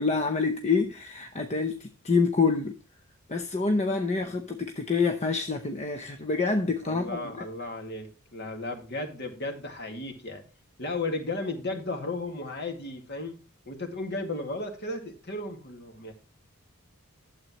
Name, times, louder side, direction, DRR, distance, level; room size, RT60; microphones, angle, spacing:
voice 1, 0.0-2.8 3.3-7.5, left 4 dB, 30° left, 0.7 m, -27 dB
voice 2, 6.8-10.4 10.8-13.4 13.7-16.1, left 2 dB, 50° left, 2.0 m, -34 dB
12.0 x 7.6 x 3.0 m
head